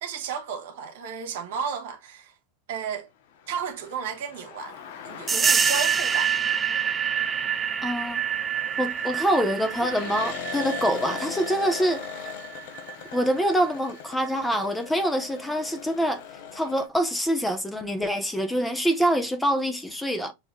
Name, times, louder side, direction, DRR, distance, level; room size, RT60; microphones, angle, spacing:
voice 1, 0.0-2.3 2.7-3.1 3.5-4.8 5.0-6.3, right 6 dB, 70° right, 1.5 m, -33 dB
sound 1, 3.4-16.9, left 9 dB, 70° left, 0.9 m, -40 dB
sound 2, 5.3-13.6, right 7 dB, 20° right, 0.4 m, -27 dB
voice 2, 7.8-8.2 8.8-12.0 13.1-16.2 16.5-20.3, equal, 5° left, 1.0 m, -25 dB
7.0 x 3.0 x 2.3 m
hypercardioid pair, 115°, 0 cm